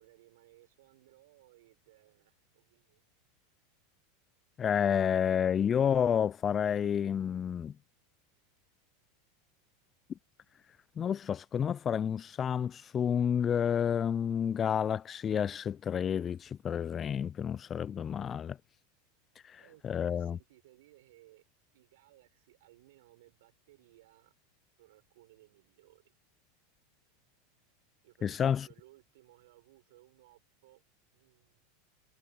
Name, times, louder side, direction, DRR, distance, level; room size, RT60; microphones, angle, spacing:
voice 1, 0.0-3.1 19.6-21.4 21.7-24.3 24.8-26.1 28.0-30.8 31.1-31.7, right 18 dB, 70° right, 6.0 m, -62 dB
voice 2, 4.6-7.7 11.0-18.6 19.4-20.4 28.2-28.7, left 8 dB, 30° left, 0.3 m, -30 dB
hypercardioid pair, 100°, 0 cm